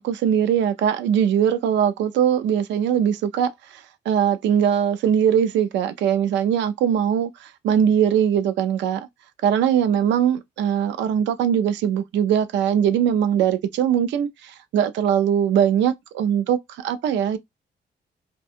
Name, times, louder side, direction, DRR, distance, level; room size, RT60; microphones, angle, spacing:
voice 1, 0.0-9.1 9.4-17.4, right 9 dB, 90° right, 0.4 m, -21 dB
2.4 x 2.2 x 2.6 m
cardioid pair, 105°, 18 cm